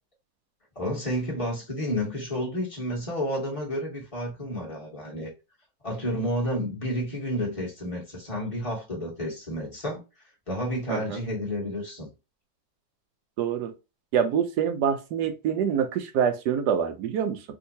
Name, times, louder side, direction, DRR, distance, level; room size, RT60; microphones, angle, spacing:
voice 1, 0.7-5.3 5.8-10.0 10.5-12.1, equal, 20° left, 1.5 m, -30 dB
voice 2, 13.4-13.7 14.1-17.4, right 8 dB, 70° right, 1.1 m, -26 dB
3.6 x 2.8 x 2.7 m
omnidirectional pair, 2.0 m